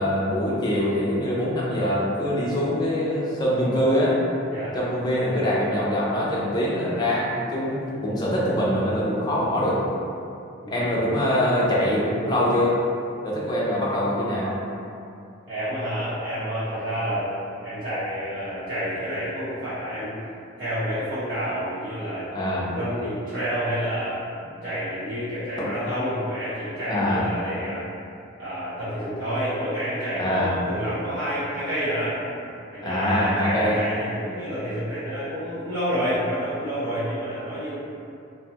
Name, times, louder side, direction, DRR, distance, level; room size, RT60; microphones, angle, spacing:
voice 1, 0.0-4.2 4.7-9.8 10.7-12.7 13.2-14.6 22.3-22.7 25.6-25.7 26.9-27.2 30.1-30.5 32.8-33.8, equal, 20° left, -6 dB, 0.4 m, -23 dB
voice 2, 15.5-17.3 17.6-20.1 20.6-22.2 22.7-24.2 24.6-27.8 28.4-32.2 32.7-37.7, equal, 65° right, -15 dB, 0.8 m, -29 dB
2.6 x 2.2 x 2.8 m, 2.6 s
head